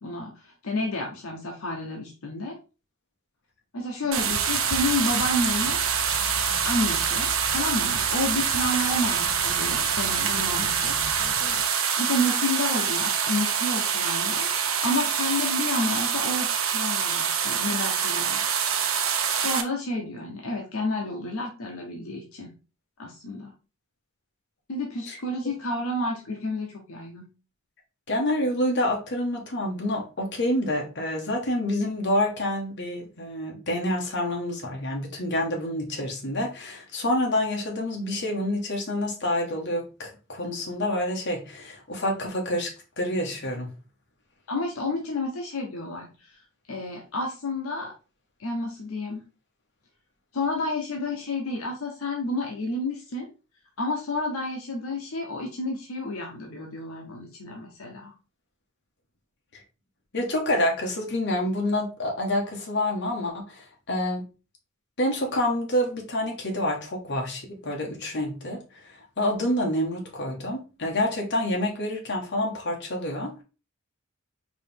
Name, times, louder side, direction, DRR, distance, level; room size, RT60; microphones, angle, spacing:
voice 1, 0.0-2.6 3.7-5.8 6.6-11.3 12.0-14.5 14.8-18.5 19.4-22.5 23.0-23.5 24.7-27.3 44.5-47.9 48.4-49.2 50.3-53.3 53.8-58.1, left 2 dB, 75° left, 0.9 m, -30 dB
sound 1, 4.1-19.6, right 7 dB, 65° right, 0.7 m, -25 dB
Fireworks, 4.2-11.6, left 3 dB, 35° left, 0.4 m, -40 dB
voice 2, 28.1-43.7 59.5-59.6 60.1-64.2 65.0-73.4, left 1 dB, 55° left, 1.3 m, -28 dB
4.8 x 2.9 x 3.5 m
head